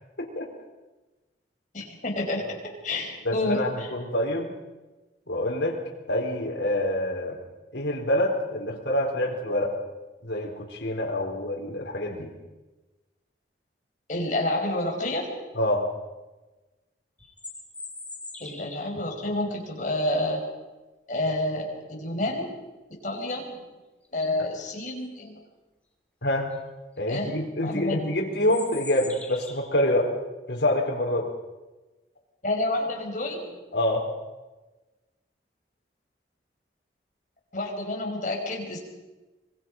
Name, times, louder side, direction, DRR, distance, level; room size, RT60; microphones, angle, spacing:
voice 1, 1.7-2.6 2.8-3.9 14.1-15.3 18.4-20.4 21.1-22.5 23.0-23.5 24.1-25.4 27.1-27.3 27.6-28.1 32.4-33.6 37.5-38.8, left 1 dB, 45° left, 0 dB, 5.5 m, -29 dB
voice 2, 3.2-4.5 5.3-5.8 6.1-7.4 7.7-9.7 10.2-12.3 15.6-15.9 26.2-26.5 27.0-30.1 30.5-31.3 33.7-34.1, left 1 dB, 75° left, -1 dB, 4.1 m, -26 dB
sound 1, 17.2-19.0 23.5-23.6 24.0-24.5 26.5-26.6 27.0-27.2 28.4-29.8, left 3 dB, 5° left, 2.7 m, -41 dB
25.5 x 22.0 x 5.5 m, 1.1 s
head